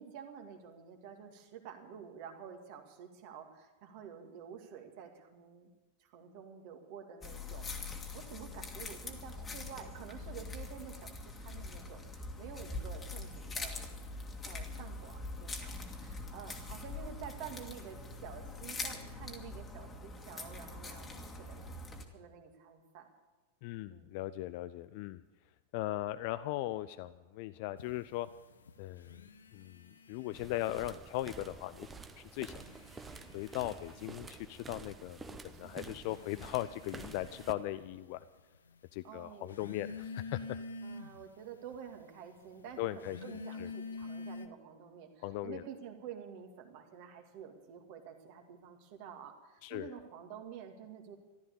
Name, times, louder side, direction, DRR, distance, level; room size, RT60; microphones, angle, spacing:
voice 1, 0.0-5.7 6.0-7.7 8.1-13.9 14.4-21.6 22.1-23.1 23.9-24.2 35.6-35.9 39.0-39.7 40.8-51.2, right 8 dB, 45° right, 4 dB, 2.2 m, -49 dB
sound 1, 7.2-22.0, left 3 dB, 20° left, 1.9 m, -43 dB
voice 2, 23.6-25.2 25.7-28.3 28.8-29.3 29.5-31.9 32.2-32.6 33.3-38.2 38.9-40.6 42.8-43.2 43.6-43.7 45.2-45.6 49.6-49.9, left 16 dB, 45° left, 14 dB, 0.4 m, -38 dB
sound 2, 27.8-30.9 31.1-31.9 32.4-44.5, left 4 dB, 70° left, 0.9 m, -48 dB
sound 3, 30.3-37.5, right 4 dB, 15° right, 1.0 m, -50 dB
14.5 x 12.5 x 7.0 m, 1.2 s
figure-of-eight pair, 90°, 0 cm